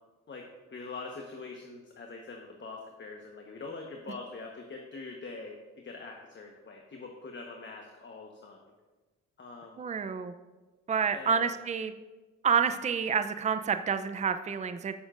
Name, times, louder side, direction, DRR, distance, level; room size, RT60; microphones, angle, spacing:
voice 1, 0.3-8.7 9.4-9.8 11.1-11.5, left 3 dB, 40° left, 1 dB, 1.2 m, -44 dB
voice 2, 9.8-10.3 10.9-11.9 12.4-14.9, right 6 dB, 25° right, 10 dB, 0.5 m, -28 dB
17.0 x 7.0 x 2.5 m, 1.2 s
cardioid pair, 90°, 30 cm